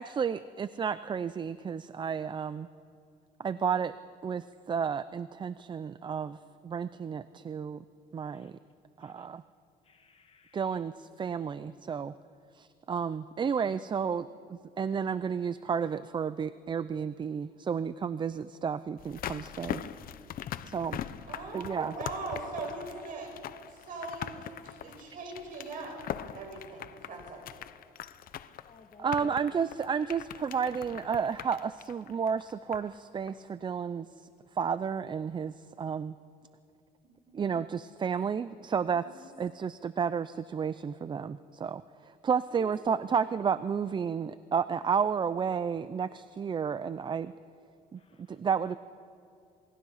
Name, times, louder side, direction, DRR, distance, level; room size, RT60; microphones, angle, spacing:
voice 1, 0.0-2.7 3.4-4.0 4.2-7.8 8.1-8.6 9.0-9.4 10.5-12.1 12.5-19.8 20.6-21.0 21.5-21.9 29.0-36.2 37.3-47.3 47.9-48.0 48.3-48.8, right 6 dB, 25° right, 15 dB, 0.5 m, -32 dB
voice 2, 9.9-10.6 28.6-29.3 48.0-48.2, left 5 dB, 35° left, 5 dB, 2.1 m, -57 dB
sound 1, 19.0-33.0 33.3-33.4, left 10 dB, 60° left, 0.8 m, -42 dB
voice 3, 21.3-23.3 23.7-26.0 26.3-27.4 37.0-37.4 38.9-39.2 42.5-42.7, right 3 dB, 55° right, 1 dB, 6.6 m, -41 dB
27.5 x 20.5 x 5.7 m, 2.5 s
cardioid pair, 110°, 17 cm